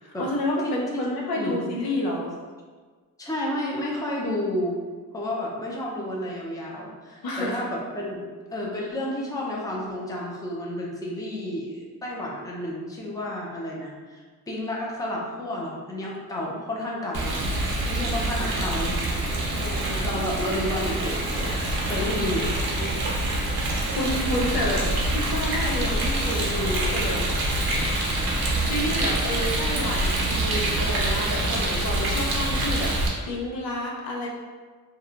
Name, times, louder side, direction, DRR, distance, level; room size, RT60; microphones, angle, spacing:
voice 1, 0.0-2.3 7.2-7.6 19.5-20.1 22.0-22.4 22.8-22.9 23.9-24.9 25.1-27.6 28.6-32.9 33.3-34.3, left 1 dB, 75° left, -2 dB, 0.6 m, -30 dB
voice 2, 0.6-1.1 1.4-1.6 3.2-4.8 5.1-8.2 8.5-14.2 14.5-17.4 17.9-19.0 19.3-22.5, left 1 dB, 10° left, -3 dB, 0.5 m, -31 dB
Rain, 17.1-33.1, right 1 dB, 85° right, 0.6 m, -26 dB
2.8 x 2.2 x 2.5 m, 1.4 s
cardioid pair, 70°, 37 cm